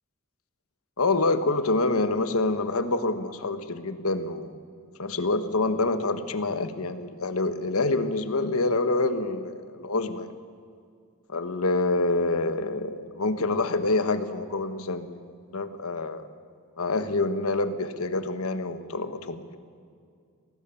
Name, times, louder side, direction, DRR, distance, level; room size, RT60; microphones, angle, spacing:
voice 1, 1.0-4.6 5.0-10.3 11.3-16.2 16.8-19.6, left 2 dB, 90° left, 10 dB, 1.3 m, -27 dB
22.5 x 18.0 x 7.1 m, 2.3 s
head